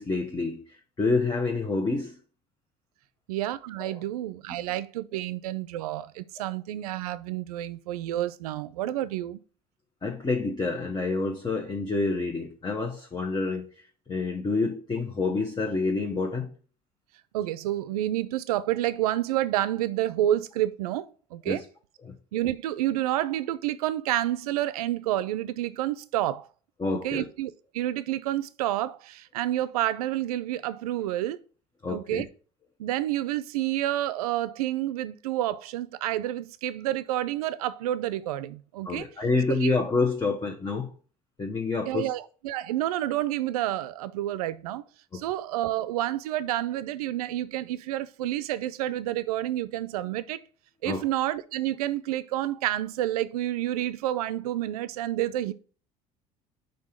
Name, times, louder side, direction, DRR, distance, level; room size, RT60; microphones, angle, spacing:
voice 1, 0.0-2.2 3.8-3.9 10.0-13.7 14.1-16.5 21.5-21.6 22.1-22.2 26.8-27.3 31.8-32.2 38.8-40.9 41.4-42.1 45.1-45.2 50.9-51.0, left 3 dB, 25° left, 1.0 m, -28 dB
voice 2, 3.3-9.4 17.3-21.1 21.3-21.6 22.3-26.5 26.9-31.4 31.9-32.3 32.8-39.1 39.6-39.7 41.9-44.8 45.1-50.4 50.8-55.5, right 13 dB, 85° right, 0.5 m, -29 dB
5.3 x 3.9 x 5.9 m
hypercardioid pair, 75°, 19 cm